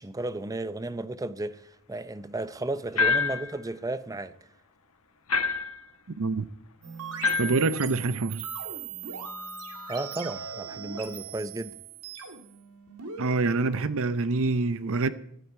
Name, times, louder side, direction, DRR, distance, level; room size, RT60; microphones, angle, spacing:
voice 1, 0.0-4.3 9.9-11.7, right 2 dB, 15° right, 0.6 m, -34 dB
sound 1, 3.0-3.5 5.3-5.8 7.2-7.6, left 4 dB, 70° left, 1.3 m, -26 dB
voice 2, 6.2-6.5 7.4-8.5 13.2-15.1, right 3 dB, 60° right, 0.7 m, -26 dB
sound 2, 6.8-13.2, right 6 dB, 85° right, 2.1 m, -39 dB
17.5 x 12.5 x 4.8 m
head